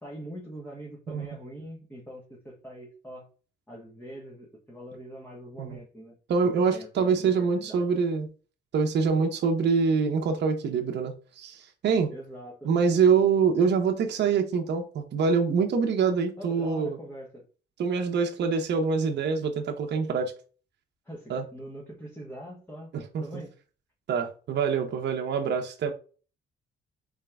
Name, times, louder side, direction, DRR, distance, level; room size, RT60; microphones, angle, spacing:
voice 1, 0.0-3.3 3.7-6.2 6.4-7.9 12.1-12.7 16.4-17.4 21.0-22.9 23.2-23.5, equal, 10° left, 1.4 m, -43 dB
voice 2, 6.3-8.3 8.7-12.1 12.6-17.0 17.8-20.3 21.3-21.4 22.9-23.4 24.1-25.9, right 5 dB, 60° right, 0.8 m, -25 dB
4.2 x 3.6 x 3.4 m
cardioid pair, 90°, 20 cm